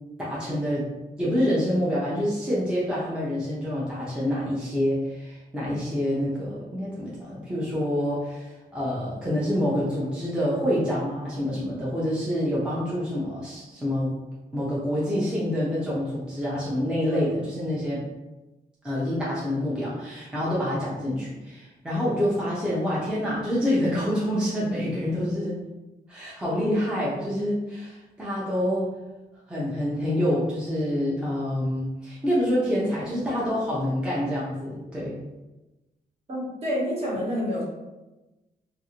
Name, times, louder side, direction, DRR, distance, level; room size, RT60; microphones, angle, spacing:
voice 1, 0.2-0.9 1.2-14.1 14.5-18.1 18.8-25.6 26.1-28.9 29.5-35.2, equal, 5° right, -8 dB, 0.5 m, -27 dB
voice 2, 36.3-37.7, equal, 40° right, -6 dB, 1.0 m, -28 dB
2.5 x 2.4 x 2.8 m, 1.1 s
wide cardioid pair, 165°, 17 cm